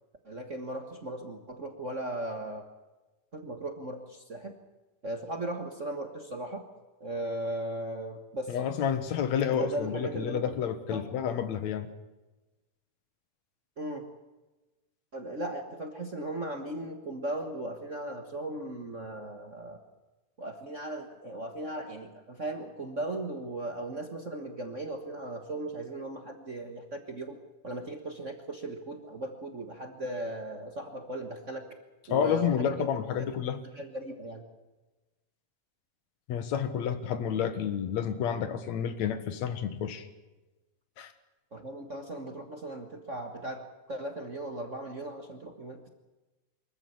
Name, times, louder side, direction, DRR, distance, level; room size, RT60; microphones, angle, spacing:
voice 1, 0.2-2.6 3.3-4.5 5.0-6.6 7.0-8.6 9.5-10.4 10.9-11.1 13.8-14.1 15.1-19.8 20.4-27.4 27.6-31.6 32.1-32.9 33.7-34.4 41.5-45.9, right 1 dB, 40° right, 5 dB, 1.1 m, -37 dB
voice 2, 8.5-11.9 32.1-33.6 36.3-40.1 41.0-41.1, left 8 dB, 65° left, 11 dB, 2.5 m, -30 dB
24.5 x 14.5 x 8.7 m, 1.1 s
omnidirectional pair, 3.6 m